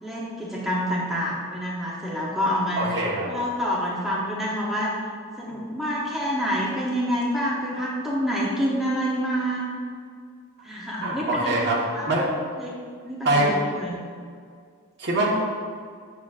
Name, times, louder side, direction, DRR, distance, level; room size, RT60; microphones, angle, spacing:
voice 1, 0.0-2.9 3.3-4.9 5.4-9.6 10.6-11.6 11.9-12.1 12.6-12.8 13.0-14.0, equal, ahead, -6 dB, 0.8 m, -27 dB
voice 2, 2.8-3.3 11.0-11.8 12.1-12.3 13.2-13.5 15.0-15.3, right 2 dB, 50° right, -4 dB, 1.3 m, -23 dB
7.5 x 7.3 x 2.4 m, 2.1 s
head